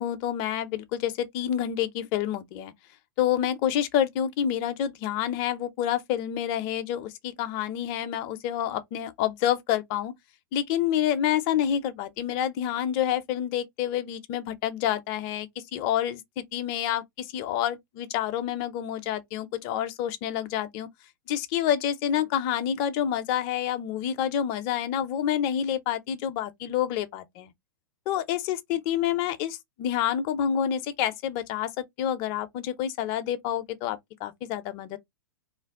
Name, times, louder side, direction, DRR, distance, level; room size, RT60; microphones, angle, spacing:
voice 1, 0.0-2.7 3.2-10.1 10.5-20.9 21.3-27.5 28.1-35.0, left 10 dB, 40° left, 0.5 m, -28 dB
2.5 x 2.3 x 3.4 m
hypercardioid pair, 115°, 12 cm